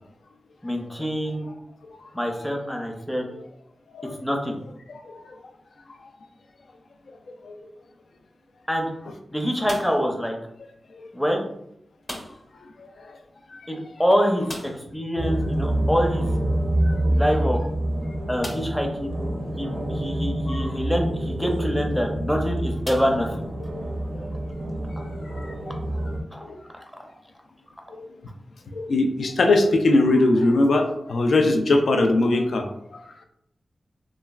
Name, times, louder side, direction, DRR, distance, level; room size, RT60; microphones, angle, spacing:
voice 1, 0.6-1.5 2.1-3.3 4.0-4.6 8.7-8.9 9.3-10.4 11.1-11.4 13.7-16.4 17.1-17.6 18.3-19.1 19.6-23.4 26.3-26.4, equal, 5° left, 1 dB, 0.5 m, -25 dB
voice 2, 4.9-5.4 7.4-7.6 10.9-11.0 12.8-13.2 13.5-13.6 16.9-17.0 20.5-20.7 24.1-24.3 25.0-25.7 26.4-26.6 27.9-28.1 28.7-33.0, left 2 dB, 80° left, 5 dB, 0.4 m, -22 dB
sound 1, 9.6-10.2 12.0-12.6 12.8-12.9 13.3-13.4 14.4-15.0 16.8-16.9 17.5-17.6 18.4-18.9 19.6-19.7 21.7-21.9 22.8-23.7, left 1 dB, 35° left, 0.9 m, -38 dB
sound 2, 15.2-26.2, right 1 dB, 75° right, 0.5 m, -27 dB
3.1 x 2.3 x 2.3 m, 0.76 s
cardioid pair, 65°, 0 cm